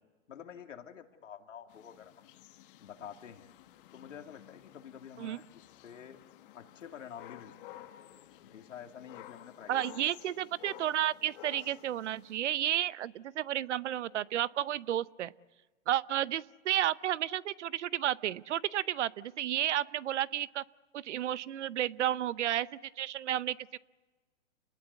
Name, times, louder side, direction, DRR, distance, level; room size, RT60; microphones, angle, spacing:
voice 1, 0.3-2.4 2.8-3.5 3.9-6.2 6.5-7.9 8.4-9.8, left 8 dB, 80° left, 5 dB, 2.6 m, -49 dB
sound 1, 1.7-12.4, left 13 dB, 45° left, 1.4 m, -53 dB
voice 2, 9.7-15.3 15.9-20.6 20.9-22.7 23.0-23.8, right 12 dB, 65° right, 19 dB, 0.8 m, -32 dB
29.0 x 19.5 x 8.2 m, 1.3 s
hypercardioid pair, 140°, 38 cm